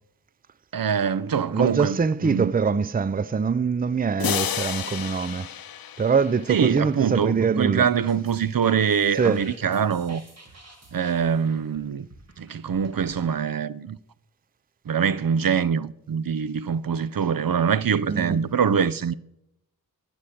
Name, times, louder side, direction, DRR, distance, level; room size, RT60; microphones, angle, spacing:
voice 1, 0.7-2.0 2.2-2.5 6.5-10.2 10.9-12.1 12.4-14.0 14.9-19.1, right 7 dB, 65° right, 0.6 m, -24 dB
voice 2, 1.5-5.5 6.0-7.9 9.1-9.5 18.1-18.5, right 5 dB, 25° right, 0.5 m, -24 dB
sound 1, 4.2-6.9, left 9 dB, 70° left, 0.6 m, -31 dB
sound 2, 8.0-13.3, right 2 dB, 45° right, 3.0 m, -50 dB
13.0 x 6.2 x 8.6 m
wide cardioid pair, 60°, 37 cm